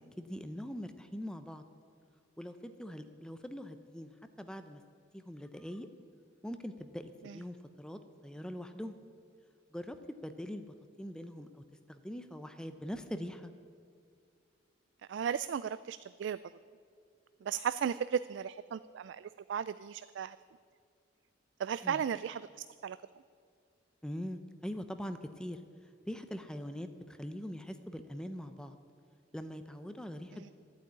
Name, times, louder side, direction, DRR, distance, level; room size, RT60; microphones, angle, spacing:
voice 1, 0.2-1.6 2.4-4.1 4.4-4.8 5.1-5.9 6.4-8.9 9.7-10.0 10.2-13.5 21.8-22.0 24.0-25.6 26.1-28.8 29.3-30.5, equal, 5° left, 9 dB, 0.5 m, -42 dB
voice 2, 15.1-16.4 17.4-20.4 21.6-23.0 30.3-30.5, right 8 dB, 70° right, 15 dB, 0.3 m, -35 dB
14.0 x 8.4 x 9.4 m, 2.2 s
head